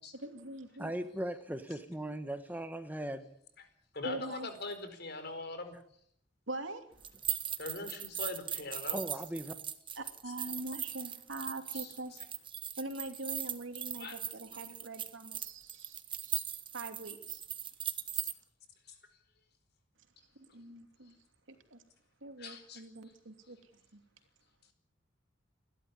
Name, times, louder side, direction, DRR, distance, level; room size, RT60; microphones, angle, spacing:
voice 1, 0.1-0.9 4.0-4.5 6.5-7.1 7.4-7.5 10.0-12.1 12.8-16.4 16.7-17.4 20.3-21.1 21.5-21.8 22.2-24.0, right 2 dB, 80° right, 6 dB, 2.9 m, -43 dB
voice 2, 0.8-3.2 8.9-9.5, right 1 dB, 10° right, 8 dB, 1.3 m, -38 dB
voice 3, 3.9-5.8 7.6-9.0 11.7-11.9 14.0-14.1 22.4-22.8, left 2 dB, 55° left, 8 dB, 4.6 m, -41 dB
sound 1, 7.0-18.3, right 9 dB, 25° right, 1.4 m, -39 dB
29.5 x 12.5 x 9.9 m, 0.71 s
head